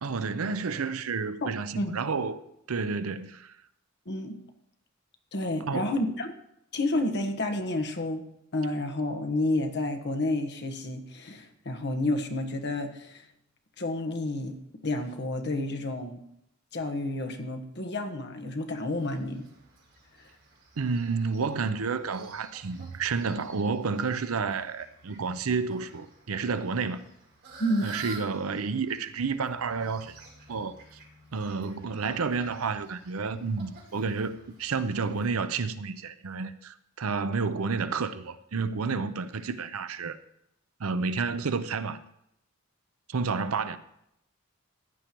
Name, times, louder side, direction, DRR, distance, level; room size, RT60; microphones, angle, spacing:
voice 1, 0.0-2.4 2.7-3.5 5.7-5.9 20.8-27.0 27.8-30.2 30.5-30.7 31.3-40.2 40.8-42.0 43.1-43.8, right 4 dB, 85° right, 0.6 m, -30 dB
voice 2, 5.3-6.3 6.7-8.2 8.5-13.2 13.8-14.6 14.8-16.2 16.7-19.4 27.6-27.9, left 1 dB, 55° left, 1.3 m, -30 dB
Fowl, 18.9-35.3, right 3 dB, 55° right, 3.7 m, -51 dB
15.0 x 10.0 x 3.1 m
head